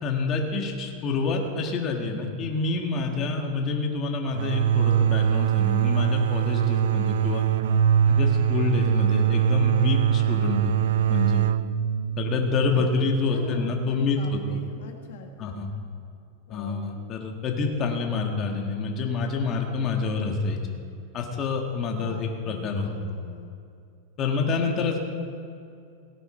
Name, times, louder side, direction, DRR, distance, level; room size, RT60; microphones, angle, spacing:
voice 1, 0.0-7.5 8.1-10.7 11.1-11.5 12.2-14.6 15.4-15.7 16.5-20.6 21.1-23.1 24.2-25.0, left 4 dB, 35° left, 2 dB, 1.8 m, -27 dB
sound 1, 4.3-13.8, right 10 dB, 80° right, 0.4 m, -23 dB
voice 2, 13.3-15.6 16.5-16.8 21.9-23.5, left 7 dB, 75° left, 3 dB, 1.6 m, -42 dB
17.5 x 10.5 x 4.4 m, 2.4 s
supercardioid pair, 135°, 0 cm